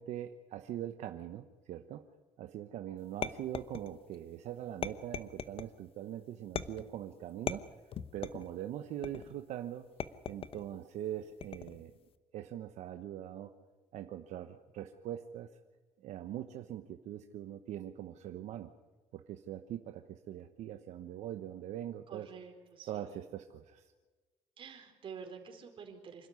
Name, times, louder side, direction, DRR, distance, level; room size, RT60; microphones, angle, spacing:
voice 1, 0.0-2.0 2.4-7.7 8.1-9.9 10.3-11.9 12.3-13.5 13.9-15.5 16.0-18.7 19.1-22.3 22.9-23.9, right 11 dB, 75° right, 7 dB, 1.0 m, -42 dB
sound 1, 3.2-4.2 4.8-5.7 6.6-7.0 7.5-8.5 9.0-9.4 10.0-10.7 11.4-11.9, left 8 dB, 50° left, 1.0 m, -39 dB
voice 2, 22.1-23.2 24.6-26.3, right 6 dB, 45° right, 4 dB, 4.2 m, -49 dB
26.5 x 12.5 x 9.6 m, 1.3 s
cardioid pair, 130°, 12 cm